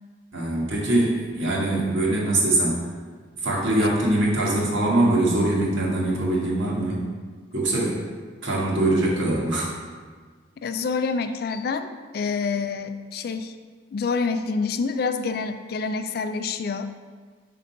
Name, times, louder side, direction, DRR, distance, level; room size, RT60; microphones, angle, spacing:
voice 1, 0.3-2.9 3.4-7.1 7.5-8.0 8.4-9.8, right 1 dB, 75° right, -5 dB, 1.5 m, -23 dB
voice 2, 10.6-13.6 13.9-16.9, left 4 dB, 50° left, 9 dB, 0.3 m, -27 dB
5.1 x 3.7 x 5.6 m, 1.5 s
head